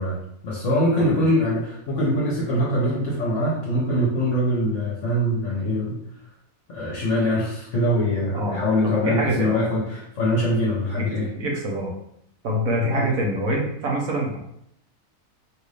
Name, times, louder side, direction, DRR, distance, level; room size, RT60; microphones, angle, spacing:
voice 1, 0.0-6.0 6.7-11.3 12.9-13.1, equal, 55° left, -5 dB, 1.3 m, -23 dB
voice 2, 8.8-9.5 10.9-11.9 12.4-14.4, equal, 70° right, -1 dB, 1.4 m, -25 dB
5.0 x 2.6 x 3.3 m, 0.74 s
omnidirectional pair, 1.6 m